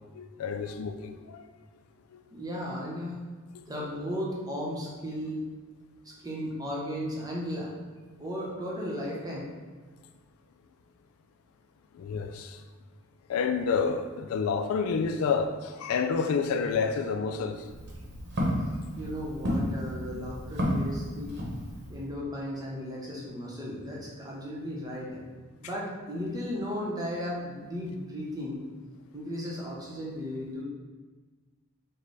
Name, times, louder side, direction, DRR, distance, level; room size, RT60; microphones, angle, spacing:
voice 1, 0.1-1.5 11.9-12.6 13.3-17.7, left 5 dB, 75° left, 7 dB, 0.3 m, -29 dB
voice 2, 2.3-3.2 3.7-5.4 6.1-7.7 8.2-9.5 19.0-21.4 21.9-25.2 25.6-28.6 29.1-30.6, equal, 15° right, -4 dB, 0.8 m, -35 dB
Walk footsteps, 17.5-22.1, equal, 50° right, 0.9 m, -32 dB
5.0 x 2.2 x 4.0 m, 1.4 s
head